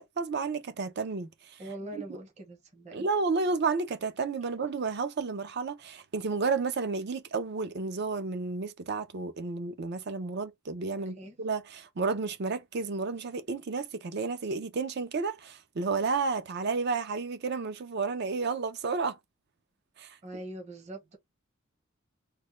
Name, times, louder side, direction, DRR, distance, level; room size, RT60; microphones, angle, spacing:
voice 1, 0.0-1.6 2.9-19.2 20.0-20.2, right 4 dB, 50° right, 0.5 m, -31 dB
voice 2, 1.6-3.1 4.4-4.5 10.9-11.4 20.2-21.2, right 1 dB, 35° right, 0.9 m, -43 dB
3.3 x 2.1 x 3.1 m
head